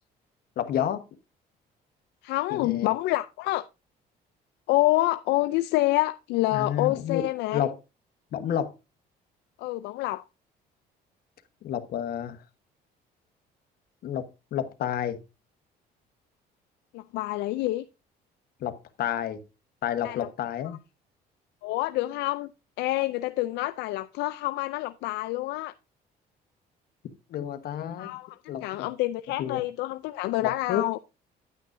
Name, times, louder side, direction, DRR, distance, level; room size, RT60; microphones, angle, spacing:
voice 1, 0.6-1.0 2.5-2.9 6.5-7.7 8.3-8.7 11.6-12.4 14.0-15.2 18.6-19.4 19.8-20.8 27.3-28.2 28.5-28.9 29.4-29.6 30.4-30.9, left 10 dB, 65° left, 1.2 m, -30 dB
voice 2, 2.2-3.7 4.7-7.7 9.6-10.2 16.9-17.8 20.0-20.3 21.6-22.5 22.8-25.7 28.0-31.0, left 18 dB, 85° left, 0.4 m, -27 dB
10.0 x 9.0 x 2.6 m
cardioid pair, 110°, 17 cm